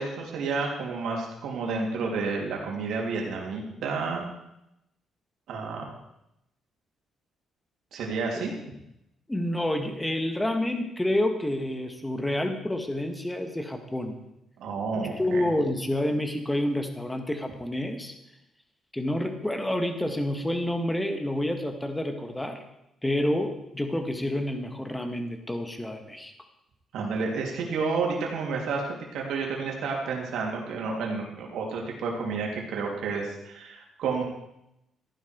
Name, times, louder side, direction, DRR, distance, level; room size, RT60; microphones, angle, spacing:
voice 1, 0.0-4.2 5.5-5.8 7.9-8.5 14.6-15.5 26.9-34.2, right 4 dB, 75° right, -1 dB, 3.3 m, -30 dB
voice 2, 9.3-14.2 15.0-18.1 18.9-22.6 23.0-26.3, left 1 dB, 10° left, 5 dB, 2.0 m, -28 dB
15.0 x 11.0 x 4.7 m, 0.84 s
cardioid pair, 90°, 0 cm